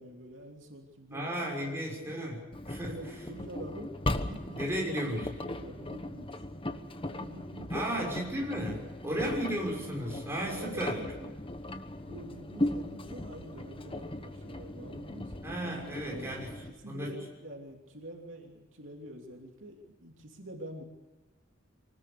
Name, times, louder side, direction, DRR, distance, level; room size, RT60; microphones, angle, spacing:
voice 1, 0.0-1.3 1.6-2.2 2.8-5.0 5.3-6.3 7.1-8.1 9.1-9.3 10.5-11.3 11.6-11.7 12.0-15.3 16.0-20.8, right 1 dB, 65° right, 1 dB, 3.0 m, -46 dB
voice 2, 1.1-2.9 4.5-5.3 7.7-11.0 15.4-16.5 16.8-17.1, right 1 dB, 10° right, -2 dB, 6.2 m, -34 dB
Engine, 2.5-16.7, left 1 dB, 25° left, 1.1 m, -38 dB
24.5 x 19.5 x 6.8 m, 1.2 s
head